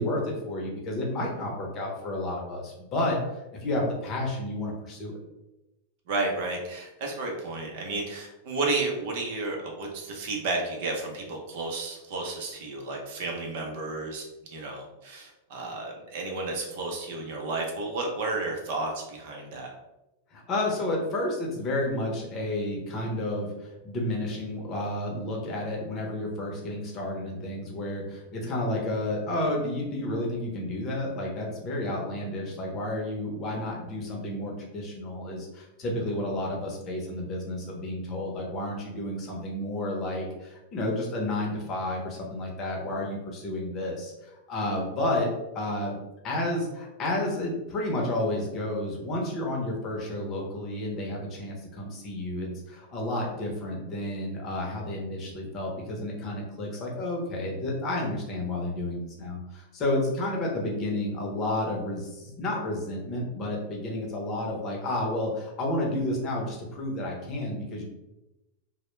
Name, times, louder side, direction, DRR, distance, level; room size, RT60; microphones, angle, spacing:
voice 1, 0.0-3.2 3.6-5.2 20.3-45.3 45.5-46.0 46.2-67.8, left 1 dB, 35° left, -1 dB, 0.7 m, -31 dB
voice 2, 6.1-14.2 14.5-19.7, right 3 dB, 60° right, 1 dB, 0.6 m, -32 dB
2.1 x 2.1 x 3.0 m, 0.97 s
supercardioid pair, 135°, 0 cm